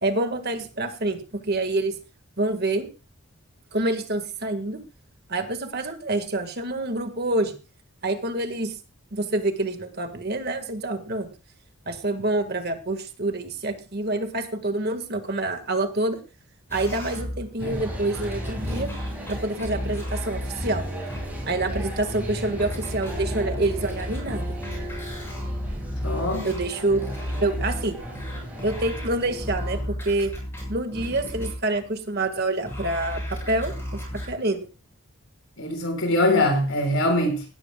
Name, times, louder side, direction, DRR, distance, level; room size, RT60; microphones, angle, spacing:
voice 1, 0.0-2.0 2.4-2.9 3.7-4.8 5.3-7.5 8.0-8.7 9.1-11.3 11.9-16.2 16.7-18.9 19.3-20.9 21.5-24.6 26.4-27.0 27.4-28.0 28.6-30.3 30.7-34.0 34.3-34.7, right 2 dB, 45° right, 7 dB, 1.7 m, -27 dB
sound 1, 16.7-32.2 32.6-34.3, equal, 10° left, 7.1 m, -33 dB
sound 2, 17.6-29.8, equal, 5° right, 5.5 m, -36 dB
voice 2, 26.0-26.4 35.6-37.4, left 1 dB, 70° left, 4 dB, 5.2 m, -23 dB
18.5 x 13.0 x 2.3 m, 0.33 s
head